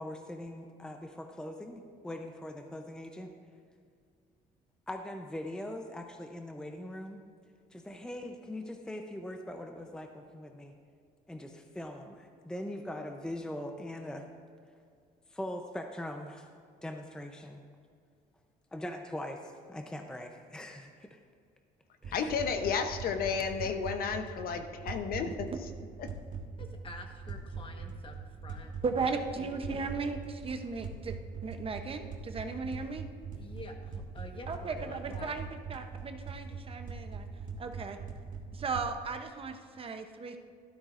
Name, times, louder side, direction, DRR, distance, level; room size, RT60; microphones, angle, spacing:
voice 1, 0.0-3.3 4.9-7.2 7.7-10.7 11.3-14.2 15.3-16.5 16.8-17.6 18.7-21.2 22.0-22.3, left 1 dB, 5° left, 4 dB, 0.6 m, -41 dB
sound 1, 22.0-38.8, right 5 dB, 50° right, 1.4 m, -42 dB
voice 2, 22.1-25.5 26.0-26.1, left 6 dB, 60° left, 7 dB, 0.8 m, -32 dB
voice 3, 26.6-29.7 33.3-35.4, left 2 dB, 30° left, 4 dB, 1.2 m, -48 dB
voice 4, 28.8-31.2 31.4-33.1 34.5-37.3 37.6-38.0 38.5-40.4, right 4 dB, 35° right, 6 dB, 0.7 m, -36 dB
12.5 x 12.0 x 2.5 m, 2.2 s
cardioid pair, 110°, 17 cm